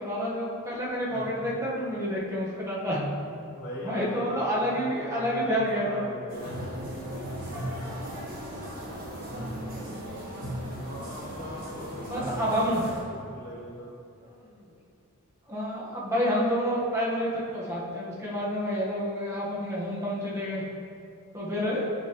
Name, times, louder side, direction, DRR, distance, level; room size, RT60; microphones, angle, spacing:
voice 1, 0.0-3.0 3.8-6.0 12.1-12.8 14.4-14.6 15.5-20.6 21.3-21.9, equal, 15° right, -6 dB, 1.3 m, -29 dB
voice 2, 1.1-1.6 3.5-6.7 10.8-13.9, equal, 55° left, -7 dB, 1.0 m, -40 dB
sound 1, 6.3-13.0, equal, 45° right, 1.5 m, -37 dB
8.1 x 5.2 x 3.1 m, 2.6 s
head